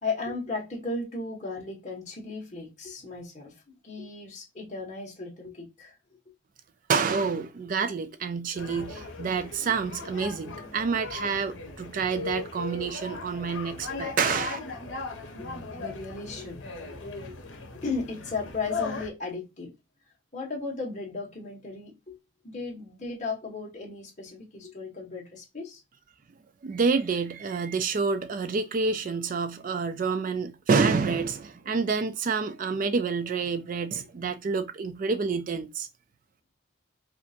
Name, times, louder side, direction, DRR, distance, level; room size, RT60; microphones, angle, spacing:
voice 1, 0.0-3.5 3.8-6.0 15.3-16.6 17.8-19.7 20.3-22.2 22.4-25.8, left 3 dB, 35° left, 1.5 m, -35 dB
voice 2, 6.9-14.6 26.6-35.9, right 5 dB, 40° right, 0.3 m, -28 dB
sound 1, 8.6-19.1, left 4 dB, 70° left, 1.2 m, -38 dB
5.0 x 2.7 x 2.5 m
head